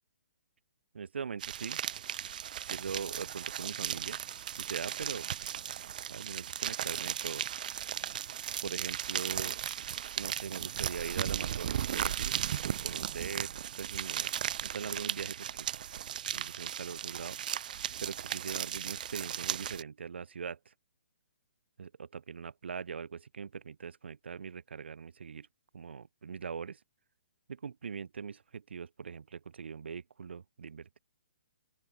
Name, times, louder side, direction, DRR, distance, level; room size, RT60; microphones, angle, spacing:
voice 1, 0.9-1.8 2.7-4.2 4.6-5.3 6.1-7.5 8.6-9.6 10.2-12.4 12.8-14.3 14.7-15.7 16.3-17.3 18.0-20.7 21.8-25.5 25.7-26.8 27.5-31.0, right 6 dB, 75° right, 2.6 m, -41 dB
sound 1, 1.4-19.8, right 10 dB, 45° right, 3.7 m, -36 dB
open air
hypercardioid pair, 165°, 6 cm